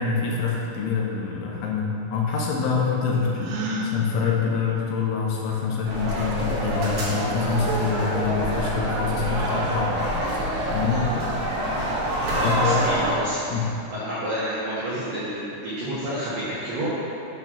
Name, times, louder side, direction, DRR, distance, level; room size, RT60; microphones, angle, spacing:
voice 1, 0.0-9.9 10.7-11.1 12.4-12.8 13.5-13.7, left 5 dB, 80° left, -3 dB, 3.1 m, -25 dB
Gasp, 3.4-3.9, right 1 dB, 85° right, 3.2 m, -29 dB
sound 1, 5.8-13.1, equal, 55° right, 3.2 m, -26 dB
voice 2, 12.3-13.4 13.9-16.9, equal, 70° right, -11 dB, 2.2 m, -29 dB
8.8 x 4.3 x 6.0 m, 2.8 s
omnidirectional pair, 5.8 m